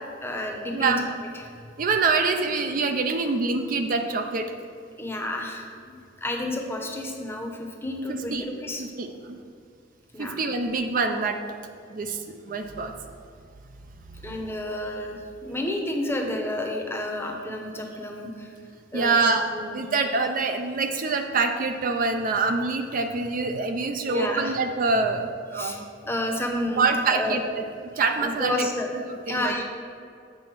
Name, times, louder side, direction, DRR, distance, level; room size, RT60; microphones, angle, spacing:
voice 1, 0.2-1.0 1.3-1.5 5.0-8.8 10.1-10.4 14.2-18.5 18.9-19.2 19.5-19.8 24.1-24.5 25.5-25.8 26.1-27.4 28.2-28.9 29.3-29.6, left 1 dB, 15° left, 2 dB, 0.7 m, -30 dB
voice 2, 0.7-1.0 1.8-4.5 8.1-8.5 8.8-9.4 10.2-11.4 11.9-12.9 14.1-14.2 18.9-19.4 19.7-25.9 26.8-27.4 28.0-28.7 28.9-29.5, right 4 dB, 45° right, 6 dB, 0.4 m, -25 dB
7.5 x 4.1 x 6.0 m, 2.4 s
head